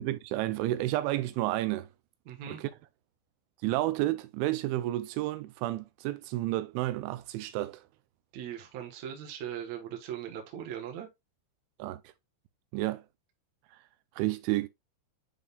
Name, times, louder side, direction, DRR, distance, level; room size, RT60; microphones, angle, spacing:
voice 1, 0.0-1.9 2.5-2.7 3.6-7.8 11.8-12.0 12.7-13.0 14.2-14.7, right 16 dB, 85° right, 2.9 m, -31 dB
voice 2, 2.3-2.6 8.3-11.1, right 9 dB, 60° right, 1.9 m, -39 dB
10.5 x 3.8 x 2.4 m
omnidirectional pair, 5.5 m